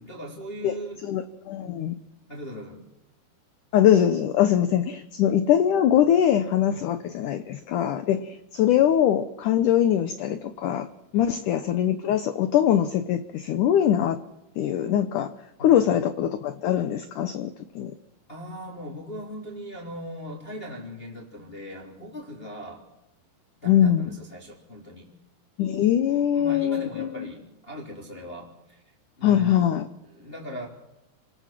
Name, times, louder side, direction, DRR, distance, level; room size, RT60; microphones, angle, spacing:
voice 1, 0.0-1.0 1.6-1.7 2.3-2.8 6.7-6.8 11.1-11.4 15.6-15.9 18.3-22.8 23.6-25.1 26.1-28.8 29.2-29.7 30.0-30.7, equal, 15° left, -1 dB, 3.5 m, -39 dB
voice 2, 1.1-1.9 3.7-10.9 11.1-14.2 14.6-15.3 15.6-17.9 23.6-24.1 25.6-27.3 29.2-29.9, left 10 dB, 70° left, 10 dB, 2.0 m, -22 dB
27.0 x 18.5 x 7.5 m, 0.90 s
omnidirectional pair, 4.7 m